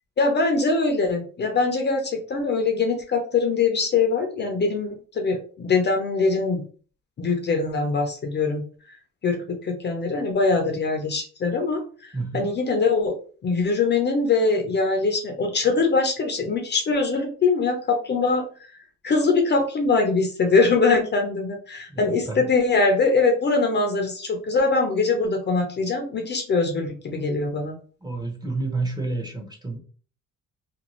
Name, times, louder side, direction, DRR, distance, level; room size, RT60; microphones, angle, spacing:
voice 1, 0.2-6.6 7.2-8.6 9.2-13.1 13.4-18.4 18.7-18.8 19.0-27.8, left 4 dB, 35° left, 4 dB, 0.5 m, -22 dB
voice 2, 12.1-12.5 21.9-22.5 28.0-29.8, right 3 dB, 15° right, 1 dB, 0.7 m, -30 dB
2.6 x 2.3 x 2.9 m, 0.40 s
cardioid pair, 135°, 31 cm